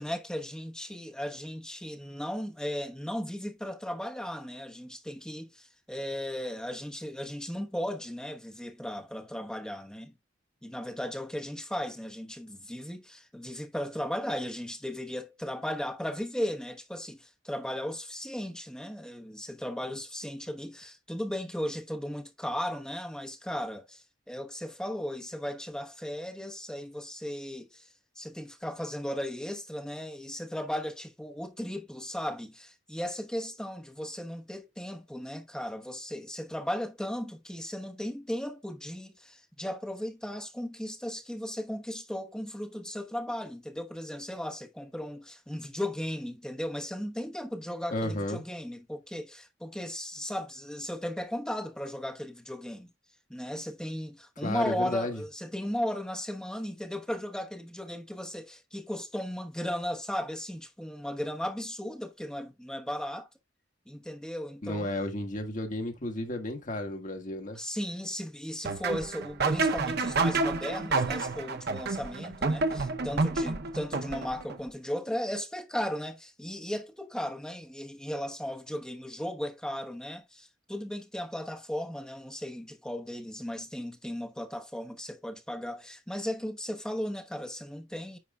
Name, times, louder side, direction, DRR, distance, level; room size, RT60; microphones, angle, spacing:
voice 1, 0.0-10.1 10.6-27.9 28.2-52.9 53.3-63.3 63.9-65.1 67.5-88.2, equal, 5° left, 1.1 m, -36 dB
voice 2, 47.9-48.4 54.4-55.2 64.6-67.6, left 1 dB, 40° left, 1.6 m, -33 dB
sound 1, 68.6-74.6, right 3 dB, 55° right, 0.7 m, -29 dB
9.6 x 4.9 x 2.3 m
head